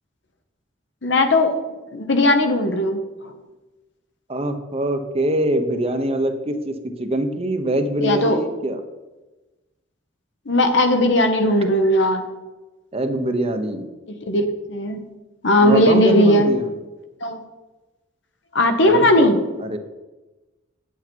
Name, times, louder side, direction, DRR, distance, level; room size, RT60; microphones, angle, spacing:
voice 1, 1.0-1.6 1.9-3.0 8.0-8.4 10.5-12.3 14.3-15.0 15.4-16.5 17.2-17.4 18.5-19.4, left 1 dB, 65° left, 7 dB, 1.1 m, -17 dB
voice 2, 4.3-8.8 12.9-13.9 15.6-16.7 18.8-19.3 19.6-19.8, right 1 dB, 30° right, 7 dB, 0.8 m, -23 dB
9.3 x 8.2 x 4.5 m, 1.1 s
head